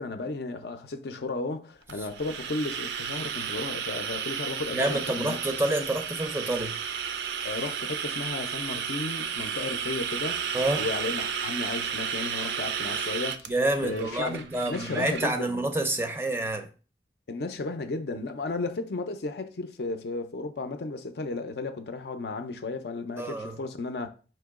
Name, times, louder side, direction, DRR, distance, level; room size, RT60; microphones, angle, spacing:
voice 1, 0.0-5.4 7.4-10.4 10.7-13.5 13.8-15.6 17.3-24.1, left 3 dB, 65° left, 0.5 m, -34 dB
sound 1, 1.9-15.3, right 7 dB, 70° right, 0.4 m, -33 dB
voice 2, 4.7-6.8 10.5-10.8 13.5-16.7 23.2-23.6, right 1 dB, 15° right, 0.4 m, -28 dB
4.6 x 2.9 x 3.5 m
head